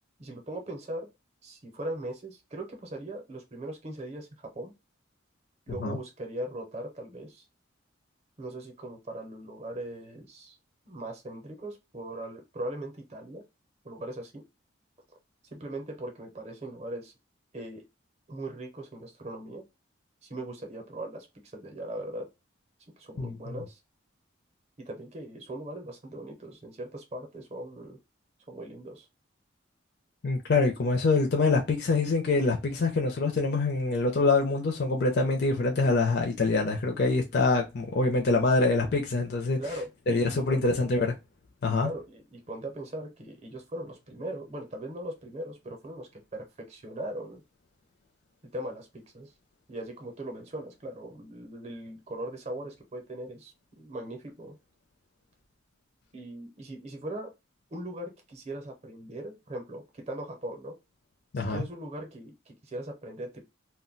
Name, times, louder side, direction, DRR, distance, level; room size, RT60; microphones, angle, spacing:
voice 1, 0.2-1.1 1.4-4.7 5.7-7.4 8.4-10.6 10.9-13.4 13.8-14.4 15.5-17.1 17.5-17.8 18.3-19.6 20.2-21.3 21.5-22.3 23.0-23.8 24.9-28.0 28.5-29.1 39.6-40.9 41.8-47.4 48.5-49.3 49.7-54.6 56.1-57.3 57.7-60.7 61.5-63.5, right 1 dB, 35° right, 0.7 m, -39 dB
voice 2, 23.2-23.5 30.2-39.6 40.1-41.1 41.6-41.9 61.3-61.6, left 3 dB, 55° left, 0.5 m, -25 dB
2.2 x 2.1 x 3.7 m
head